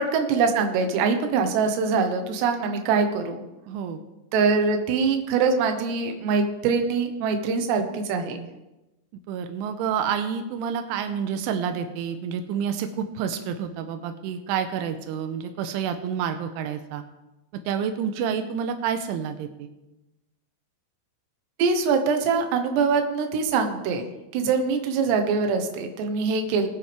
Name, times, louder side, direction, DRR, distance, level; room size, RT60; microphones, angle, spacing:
voice 1, 0.0-3.4 4.3-8.4 21.6-26.7, right 5 dB, 70° right, 6 dB, 3.1 m, -23 dB
voice 2, 3.7-4.0 9.3-17.0 17.7-19.7, right 7 dB, 90° right, 8 dB, 3.2 m, -29 dB
21.0 x 9.4 x 3.5 m, 1.0 s
omnidirectional pair, 5.5 m